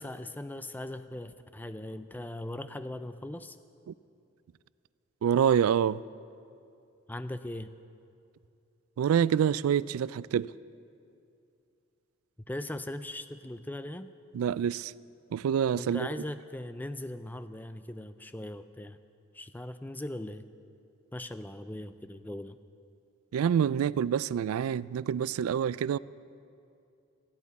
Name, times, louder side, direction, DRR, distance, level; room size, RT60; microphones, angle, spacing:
voice 1, 0.0-3.6 7.1-7.7 12.5-14.1 15.8-19.0 19.3-20.4 21.1-22.6, left 1 dB, 10° left, 0.4 m, -39 dB
voice 2, 5.2-6.0 9.0-10.5 14.3-14.9 15.3-16.1 23.3-26.0, right 8 dB, 85° right, 0.3 m, -26 dB
19.0 x 14.5 x 4.1 m
head